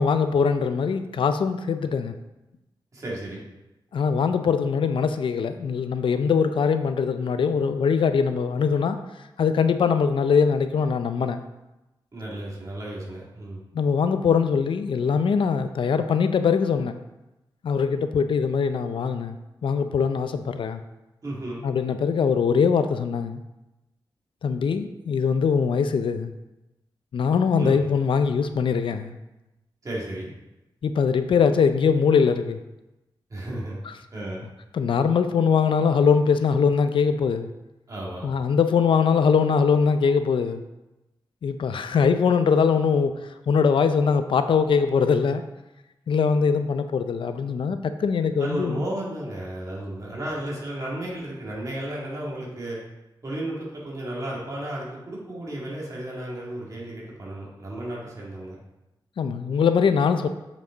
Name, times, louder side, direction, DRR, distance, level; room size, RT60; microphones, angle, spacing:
voice 1, 0.0-2.1 3.9-9.0 9.4-11.4 13.7-16.9 17.6-19.4 19.6-20.8 21.6-23.4 24.4-26.3 27.1-29.1 30.8-32.6 34.7-37.5 38.2-40.6 41.4-43.1 43.5-45.4 46.1-48.8 59.2-60.3, left 6 dB, 75° left, 9 dB, 0.5 m, -22 dB
voice 2, 2.9-3.4 12.1-13.6 21.2-21.6 27.6-27.8 29.8-30.3 33.3-33.8 34.1-34.4 37.9-38.3 48.4-52.8 53.2-58.6, right 1 dB, 40° right, -5 dB, 2.4 m, -33 dB
7.5 x 5.3 x 3.9 m, 0.98 s
wide cardioid pair, 105°, 9 cm